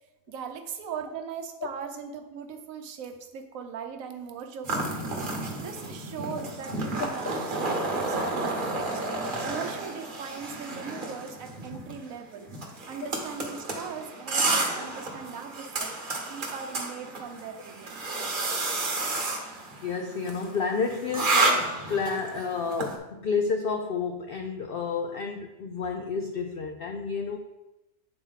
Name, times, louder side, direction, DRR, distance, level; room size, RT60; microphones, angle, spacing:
voice 1, 0.3-5.2 5.6-7.4 7.9-9.0 9.4-12.5 12.9-18.1, right 6 dB, 70° right, 6 dB, 1.1 m, -39 dB
sound 1, 4.6-23.0, right 2 dB, 40° right, 1.0 m, -31 dB
voice 2, 19.8-27.4, left 5 dB, 85° left, 4 dB, 0.5 m, -30 dB
7.7 x 4.1 x 4.0 m, 0.99 s
omnidirectional pair, 1.5 m